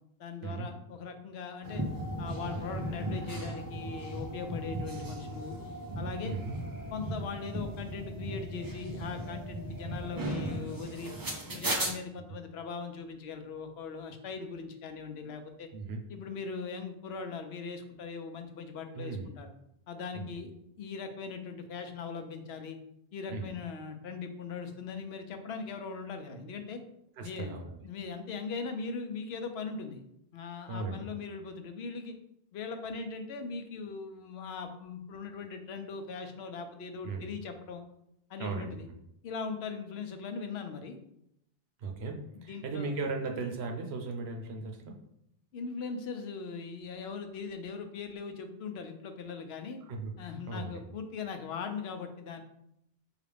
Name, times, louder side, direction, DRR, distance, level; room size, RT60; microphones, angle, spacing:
voice 1, 0.2-1.8 2.2-5.6 6.0-6.3 6.9-11.1 11.5-15.7 16.1-19.5 19.9-20.5 20.8-22.8 23.1-26.8 27.2-27.6 27.8-30.0 30.3-32.1 32.5-37.8 38.3-38.9 39.2-41.0 42.3-42.9 45.5-49.8 50.2-52.4, left 5 dB, 85° left, 6 dB, 0.8 m, -40 dB
sound 1, 1.6-11.9, right 1 dB, 30° right, 0.4 m, -37 dB
voice 2, 6.2-6.5 15.7-16.0 18.9-19.3 20.1-20.2 23.3-23.5 27.2-27.8 30.7-31.1 37.0-37.3 38.4-39.0 41.8-45.0 49.9-50.1 50.5-50.8, right 3 dB, 90° right, 3 dB, 0.9 m, -37 dB
4.9 x 2.4 x 3.3 m, 0.77 s
omnidirectional pair, 1.0 m